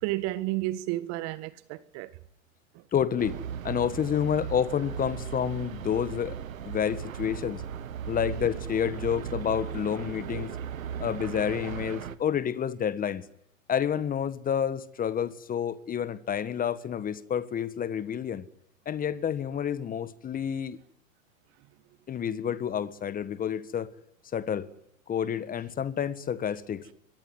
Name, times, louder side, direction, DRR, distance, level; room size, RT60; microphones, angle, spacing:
voice 1, 0.0-2.1, right 16 dB, 40° right, 1.6 m, -31 dB
voice 2, 2.9-6.4 6.6-7.6 8.1-10.6 11.0-13.2 13.7-18.5 18.8-20.8 22.1-23.9 24.3-24.7 25.1-26.8, left 8 dB, 20° left, 1.5 m, -29 dB
sound 1, 3.2-12.2, right 8 dB, 75° right, 1.7 m, -37 dB
26.0 x 23.0 x 9.7 m
hypercardioid pair, 105°, 41 cm